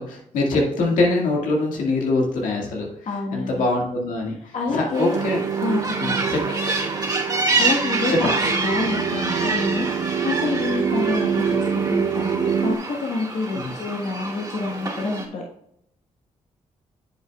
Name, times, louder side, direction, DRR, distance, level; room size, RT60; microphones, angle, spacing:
voice 1, 0.0-2.9 3.3-5.4 6.0-6.7 8.1-8.3 13.6-13.7, left 2 dB, 85° left, -1 dB, 1.9 m, -23 dB
voice 2, 3.1-3.6 4.5-5.2 5.6-6.2 7.6-15.4, left 3 dB, 65° left, -1 dB, 1.3 m, -28 dB
sound 1, 4.9-15.3, right 3 dB, 30° right, 2.4 m, -27 dB
sound 2, 5.1-12.8, right 7 dB, 60° right, 0.5 m, -26 dB
9.1 x 7.4 x 2.3 m, 0.74 s
cardioid pair, 60°, 13 cm